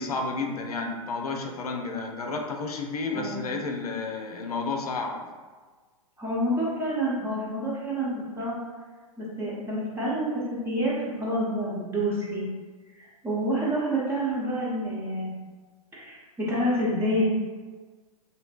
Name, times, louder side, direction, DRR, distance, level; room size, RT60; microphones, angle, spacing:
voice 1, 0.0-5.2, left 3 dB, 80° left, 2 dB, 0.5 m, -31 dB
voice 2, 3.1-3.5 6.2-8.6 9.2-12.4 13.0-15.3 15.9-17.3, equal, 10° right, -7 dB, 0.9 m, -28 dB
3.0 x 2.7 x 2.3 m, 1.4 s
figure-of-eight pair, 105°, 19 cm